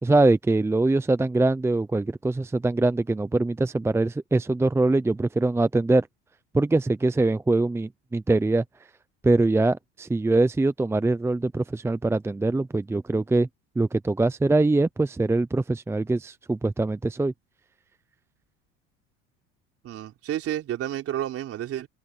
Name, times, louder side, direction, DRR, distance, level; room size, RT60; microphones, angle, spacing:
voice 1, 0.0-6.1 6.5-8.6 9.2-13.5 13.8-17.3, right 2 dB, 10° right, 0.7 m, -23 dB
voice 2, 19.8-21.9, right 12 dB, 50° right, 4.3 m, -30 dB
open air
supercardioid pair, 105°, 30 cm